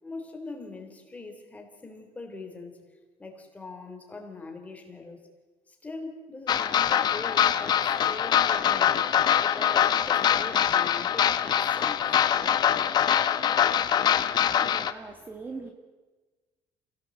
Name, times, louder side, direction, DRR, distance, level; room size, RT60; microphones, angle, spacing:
voice 1, 0.0-2.8 3.2-5.2 5.7-9.0 9.4-12.3, left 3 dB, 15° left, 3 dB, 3.5 m, -42 dB
sound 1, 6.5-14.9, left 9 dB, 40° left, 1.0 m, -23 dB
voice 2, 14.2-15.7, right 3 dB, 20° right, 3 dB, 1.8 m, -42 dB
28.5 x 17.5 x 7.9 m, 1.3 s
cardioid pair, 165°, 10 cm